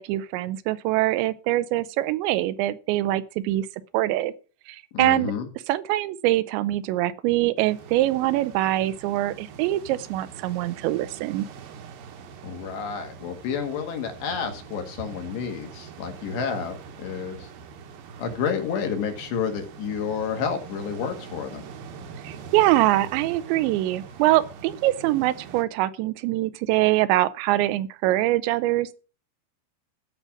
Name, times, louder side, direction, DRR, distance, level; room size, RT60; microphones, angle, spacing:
voice 1, 0.0-3.7 3.9-4.3 4.7-5.3 5.7-11.5 22.2-28.9, right 16 dB, 85° right, 3.0 m, -23 dB
voice 2, 4.9-5.5 12.4-17.5 18.2-21.6, left 6 dB, 75° left, 3.8 m, -30 dB
sound 1, 7.6-25.6, right 6 dB, 65° right, 2.5 m, -43 dB
14.0 x 5.6 x 5.9 m
omnidirectional pair, 5.1 m